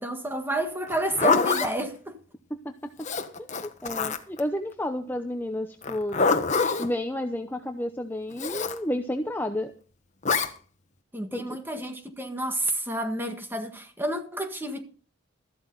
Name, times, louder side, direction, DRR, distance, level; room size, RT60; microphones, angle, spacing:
voice 1, 0.0-2.1 11.1-14.8, right 1 dB, 10° right, 1.7 m, -30 dB
Zipper (clothing), 0.9-1.7 3.0-4.4 5.8-6.9 8.4-8.8 10.2-10.5, left 4 dB, 35° left, 1.2 m, -25 dB
voice 2, 2.5-2.9 3.4-6.2 6.8-9.7 11.3-11.6, left 1 dB, 10° left, 0.8 m, -31 dB
14.0 x 12.5 x 4.0 m
head